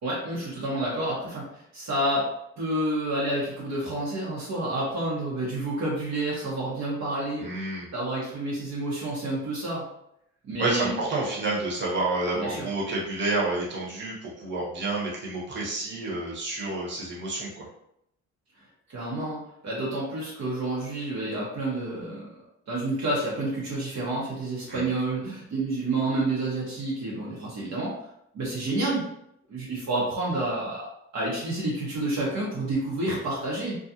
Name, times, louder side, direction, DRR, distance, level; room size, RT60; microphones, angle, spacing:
voice 1, 0.0-2.3 2.6-7.5 7.9-9.8 10.4-11.0 12.3-12.7 18.9-22.2 22.7-27.9 28.3-29.0 29.5-33.8, right 2 dB, 65° right, -6 dB, 0.9 m, -29 dB
voice 2, 7.4-7.9 10.6-17.6 24.7-24.9, right 2 dB, 40° right, -5 dB, 1.1 m, -29 dB
2.4 x 2.3 x 2.7 m, 0.76 s
cardioid pair, 90°, 30 cm